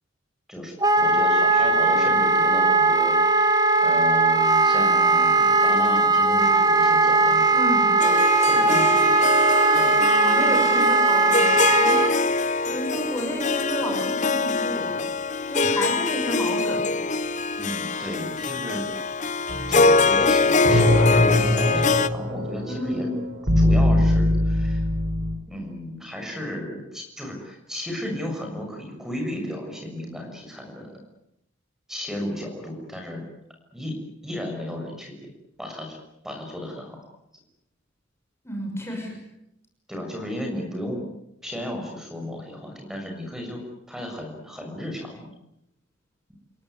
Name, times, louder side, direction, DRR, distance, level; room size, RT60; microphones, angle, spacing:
voice 1, 0.5-3.5 3.8-7.5 8.5-8.9 9.4-9.9 17.6-18.9 19.7-23.1 23.6-24.8 25.5-31.0 31.9-33.2 33.7-35.2 35.6-36.0 36.2-37.0 39.9-41.0 41.4-43.6 43.9-45.3, left 1 dB, ahead, 2 dB, 6.8 m, -34 dB
Wind instrument woodwind instrument, 0.8-12.1, right 3 dB, 20° right, 1.8 m, -19 dB
voice 2, 7.5-8.0 8.4-9.1 9.9-12.4 12.7-15.0 15.5-16.9 22.6-23.2 38.4-39.2, equal, 15° left, 0 dB, 6.3 m, -31 dB
Harp, 8.0-22.1, left 3 dB, 40° left, 0.9 m, -24 dB
sound 1, 19.5-25.4, left 1 dB, 65° right, 4.4 m, -22 dB
29.0 x 17.5 x 9.7 m, 0.83 s
head